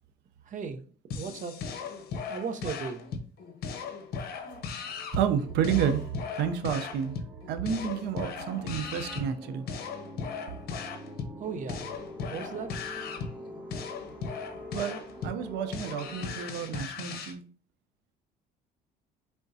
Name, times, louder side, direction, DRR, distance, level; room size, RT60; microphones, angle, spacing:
voice 1, 0.4-1.6 2.3-3.1 11.4-11.9 12.3-12.7, right 6 dB, 50° right, 0.7 m, -36 dB
sound 1, 1.1-17.3, left 6 dB, 65° left, 0.8 m, -38 dB
sound 2, 4.2-16.7, equal, 10° right, 0.9 m, -47 dB
voice 2, 5.1-7.2 7.5-9.7 14.7-17.4, right 8 dB, 85° right, 0.6 m, -30 dB
5.0 x 3.5 x 2.7 m
cardioid pair, 110°, 17 cm